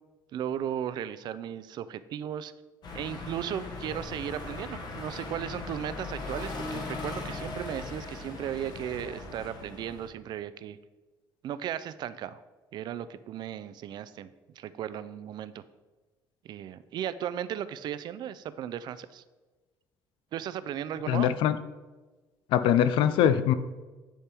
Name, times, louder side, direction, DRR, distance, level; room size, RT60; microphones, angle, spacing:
voice 1, 0.3-2.5 2.9-10.8 11.4-12.4 12.7-14.3 14.6-15.6 16.4-19.2 20.3-21.3, right 10 dB, 60° right, 15 dB, 0.4 m, -36 dB
sound 1, 2.8-10.1, left 3 dB, 55° left, 1.4 m, -39 dB
voice 2, 21.1-21.6 22.5-23.5, left 10 dB, 85° left, 13 dB, 0.4 m, -22 dB
10.0 x 3.5 x 4.4 m, 1.2 s
cardioid pair, 130°, 9 cm